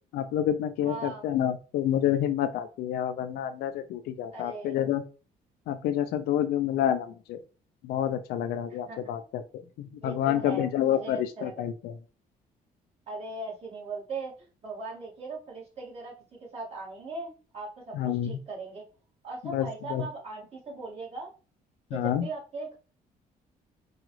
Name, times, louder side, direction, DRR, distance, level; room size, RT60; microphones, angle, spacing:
voice 1, 0.1-5.0 5.7-7.4 7.8-9.4 9.8-11.9 17.9-18.4 19.4-20.1 21.9-22.3, left 10 dB, 85° left, 10 dB, 0.5 m, -28 dB
voice 2, 0.8-1.2 4.3-4.8 8.7-9.1 10.0-11.5 13.1-18.8 19.2-21.3 21.9-22.8, right 3 dB, 40° right, -4 dB, 1.9 m, -39 dB
4.8 x 2.4 x 3.1 m, 0.36 s
cardioid pair, 105°, 16 cm